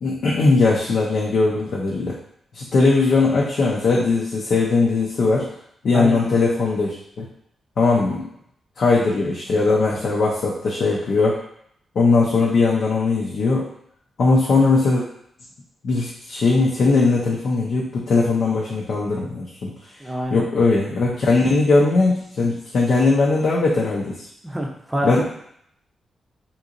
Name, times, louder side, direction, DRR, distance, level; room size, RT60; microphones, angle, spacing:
voice 1, 0.0-2.2 2.5-5.5 5.8-7.3 7.8-8.2 8.8-11.4 12.0-13.7 14.2-15.0 15.8-19.7 20.3-24.1 25.0-25.2, left 3 dB, 65° left, -4 dB, 0.6 m, -19 dB
voice 2, 20.0-20.5 24.4-25.2, equal, 10° right, 0 dB, 0.6 m, -25 dB
3.7 x 2.8 x 2.5 m, 0.70 s
wide cardioid pair, 120°, 0 cm